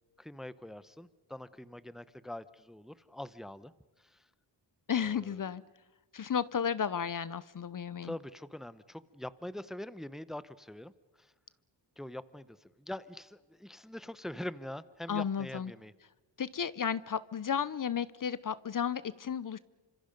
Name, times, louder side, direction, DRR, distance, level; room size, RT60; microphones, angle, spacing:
voice 1, 0.2-3.7 4.0-4.2 4.9-5.5 8.0-10.9 11.2-11.3 12.0-15.9, left 1 dB, ahead, 15 dB, 0.8 m, -44 dB
voice 2, 4.9-5.6 6.1-8.1 15.1-15.7 16.4-19.6, left 7 dB, 45° left, 17 dB, 0.7 m, -33 dB
27.5 x 25.5 x 5.3 m, 1.2 s
cardioid pair, 90°, 44 cm